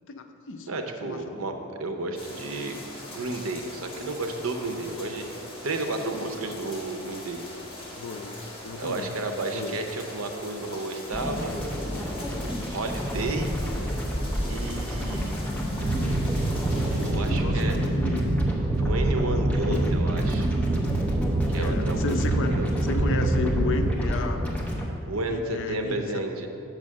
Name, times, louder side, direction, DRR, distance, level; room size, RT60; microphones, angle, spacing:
voice 1, 0.1-1.4 7.9-9.1 9.5-9.8 17.3-18.3 19.7-19.8 21.5-24.4 25.3-26.2, left 4 dB, 60° left, 6 dB, 0.5 m, -33 dB
voice 2, 0.7-2.8 3.1-5.3 5.6-7.5 8.8-11.6 12.7-13.5 14.4-15.4 16.9-17.8 18.8-20.5 21.5-22.2 22.5-23.0 25.1-26.5, right 2 dB, 75° right, 5 dB, 0.7 m, -32 dB
sound 1, 2.1-17.1, left 1 dB, 25° left, 1.2 m, -42 dB
sound 2, 11.1-24.9, equal, 5° left, 0.8 m, -30 dB
sound 3, 15.8-23.9, right 2 dB, 30° right, 0.3 m, -26 dB
6.3 x 4.8 x 6.4 m, 2.7 s
head